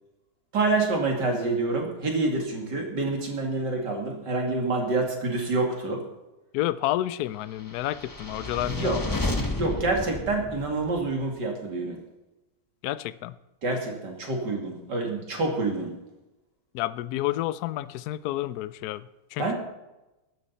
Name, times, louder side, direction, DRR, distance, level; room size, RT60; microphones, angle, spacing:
voice 1, 0.5-6.0 8.6-9.0 9.6-12.0 13.6-15.9 19.4-19.5, right 3 dB, 55° right, 1 dB, 3.2 m, -27 dB
voice 2, 6.5-9.4 12.8-13.3 16.7-19.5, left 14 dB, 80° left, 16 dB, 0.8 m, -30 dB
sound 1, 7.7-11.1, left 2 dB, 15° left, 0.8 m, -32 dB
15.5 x 12.0 x 4.2 m, 1.0 s
omnidirectional pair, 2.2 m